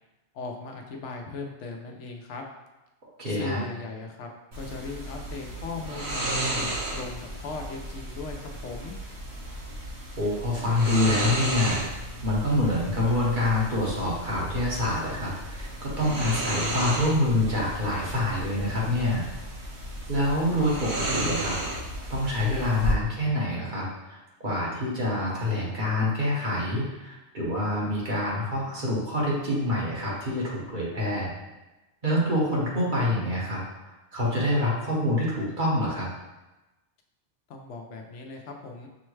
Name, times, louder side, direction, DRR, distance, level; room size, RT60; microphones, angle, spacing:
voice 1, 0.3-2.4 3.3-4.3 4.5-8.9 37.5-38.9, left 4 dB, 80° left, 2 dB, 0.9 m, -38 dB
voice 2, 3.2-3.6 10.2-19.3 20.1-21.6 22.1-31.3 32.0-33.6 34.1-36.1, left 1 dB, 45° right, -6 dB, 1.2 m, -26 dB
sound 1, 4.5-22.9, right 1 dB, 65° right, 1.5 m, -33 dB
6.0 x 2.2 x 3.1 m, 1.1 s
omnidirectional pair, 1.2 m